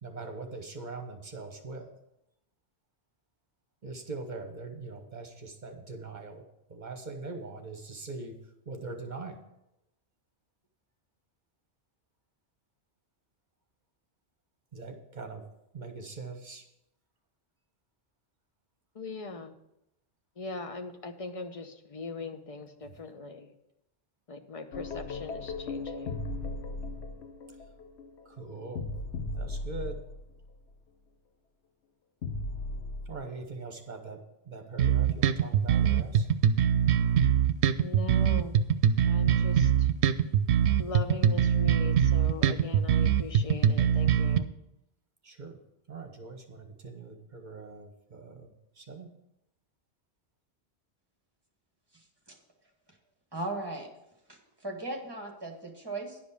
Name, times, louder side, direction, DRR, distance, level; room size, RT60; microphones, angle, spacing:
voice 1, 0.0-1.9 3.8-6.4 6.7-8.3 8.7-9.4 14.7-15.4 15.7-16.6 22.8-22.9 28.2-28.9 29.4-30.0 33.1-34.2 34.4-36.3 45.2-45.6 45.9-49.1, right 3 dB, 45° right, 4 dB, 1.2 m, -42 dB
voice 2, 19.0-19.5 20.4-23.5 24.3-26.2 37.8-38.6 39.1-39.9 40.8-44.5, left 3 dB, 35° left, 7 dB, 0.8 m, -40 dB
sound 1, 24.7-30.6 32.2-33.2, left 2 dB, 85° left, 1.1 m, -37 dB
sound 2, 34.8-44.4, right 9 dB, 85° right, 0.8 m, -23 dB
voice 3, 51.9-52.4 53.3-53.9 54.3-56.2, right 2 dB, 20° right, 1 dB, 1.6 m, -38 dB
10.5 x 5.1 x 6.7 m, 0.85 s
omnidirectional pair, 1.1 m